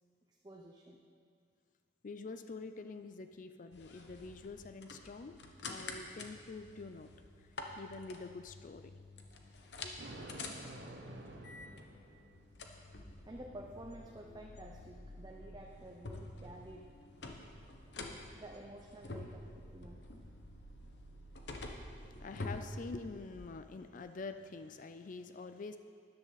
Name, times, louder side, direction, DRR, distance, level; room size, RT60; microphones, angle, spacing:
voice 1, 0.3-1.0 13.3-17.0 18.3-20.1, right 1 dB, 25° right, 0 dB, 0.7 m, -51 dB
voice 2, 2.0-7.1 7.4-8.9 9.8-10.0 22.0-25.8, left 3 dB, 45° left, 9 dB, 0.4 m, -46 dB
sound 1, 3.7-23.6, left 2 dB, 70° left, 1.0 m, -49 dB
Thunder, 10.0-12.5, right 1 dB, 80° right, 1.1 m, -49 dB
13.5 x 10.5 x 4.1 m, 2.2 s
head